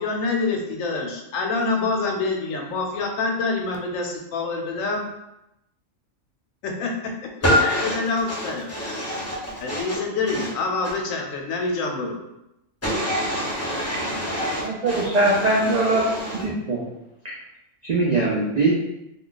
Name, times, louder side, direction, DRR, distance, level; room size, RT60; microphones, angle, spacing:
voice 1, 0.0-5.0 6.6-8.7 9.6-12.2, left 3 dB, 85° left, 1.0 m, -26 dB
voice 2, 7.4-7.9 8.3-10.0 10.3-10.5 12.8-16.4, equal, 15° left, 0.6 m, -26 dB
voice 3, 14.6-16.0 16.3-16.8 17.2-17.3 17.8-18.7, right 2 dB, 85° right, 0.3 m, -21 dB
2.4 x 2.3 x 3.8 m
omnidirectional pair, 1.3 m